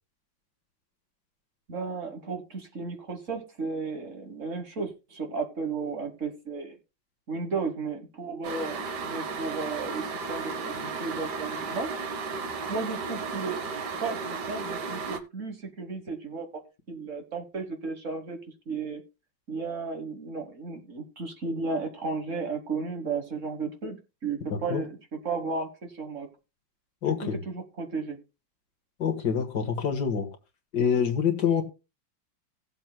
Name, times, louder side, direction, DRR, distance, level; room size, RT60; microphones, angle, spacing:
voice 1, 1.7-6.7 7.3-11.9 12.7-13.6 14.0-16.5 16.9-18.4 18.7-19.0 19.5-24.0 24.2-26.3 27.0-28.2, right 4 dB, 45° right, 1.6 m, -34 dB
sound 1, 8.4-15.2, right 4 dB, 65° right, 1.7 m, -34 dB
voice 2, 24.5-24.8 27.0-27.4 29.0-30.3 30.7-31.6, left 7 dB, 60° left, 2.1 m, -26 dB
18.0 x 7.8 x 2.2 m
omnidirectional pair, 2.0 m